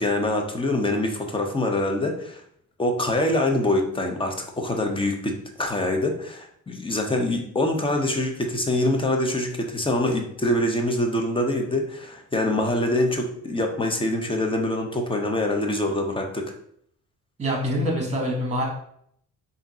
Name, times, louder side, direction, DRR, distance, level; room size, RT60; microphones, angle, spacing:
voice 1, 0.0-2.4 2.8-16.5, left 1 dB, 15° left, 3 dB, 0.7 m, -25 dB
voice 2, 17.4-18.7, equal, 20° right, 0 dB, 1.4 m, -25 dB
3.5 x 2.7 x 4.1 m, 0.68 s
cardioid pair, 90°, 34 cm